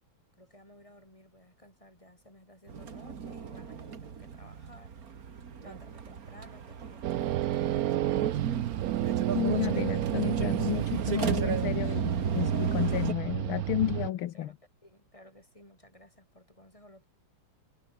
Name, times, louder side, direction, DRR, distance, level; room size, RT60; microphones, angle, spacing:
voice 1, 0.3-8.6 14.3-14.5 14.8-17.0, left 1 dB, 15° left, 8.1 m, -56 dB
sound 1, 2.7-13.1, right 6 dB, 45° right, 2.0 m, -34 dB
sound 2, 7.0-14.1, right 13 dB, 80° right, 0.8 m, -31 dB
voice 2, 9.3-14.5, left 13 dB, 80° left, 1.7 m, -32 dB
omnidirectional pair, 2.3 m